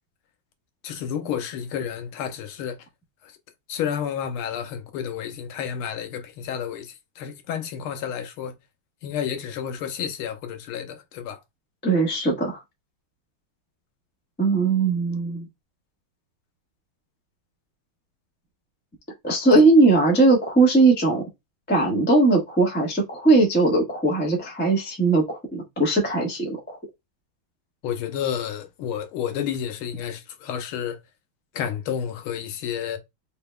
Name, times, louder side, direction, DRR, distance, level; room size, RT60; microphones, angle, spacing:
voice 1, 0.8-2.8 3.2-3.3 3.7-8.5 9.0-11.4 27.8-31.0 31.5-33.0, left 8 dB, 85° left, 1.6 m, -30 dB
voice 2, 11.8-12.6 14.4-15.5 19.2-21.2 21.7-26.8, right 3 dB, 5° left, 0.9 m, -19 dB
5.0 x 3.5 x 2.2 m
omnidirectional pair, 2.3 m